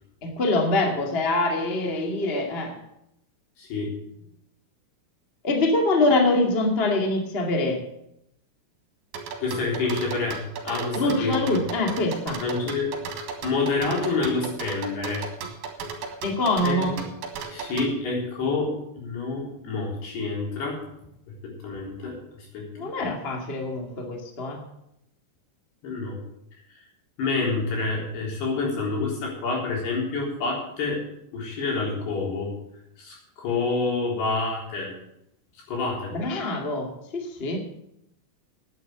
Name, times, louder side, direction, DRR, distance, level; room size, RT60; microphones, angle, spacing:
voice 1, 0.2-2.8 5.4-7.8 10.9-12.4 16.2-17.0 22.7-24.6 36.1-37.6, left 2 dB, 25° left, 1 dB, 1.4 m, -24 dB
voice 2, 3.6-3.9 9.4-11.3 12.4-12.9 13.4-15.3 16.6-16.9 17.5-20.8 21.4-22.9 25.8-26.2 27.2-31.0 31.3-32.5 33.0-34.9 35.7-36.1, left 3 dB, 75° left, -3 dB, 5.9 m, -28 dB
sound 1, 9.1-17.9, right 5 dB, 70° right, 3.4 m, -35 dB
10.5 x 9.0 x 7.9 m, 0.79 s
omnidirectional pair, 4.8 m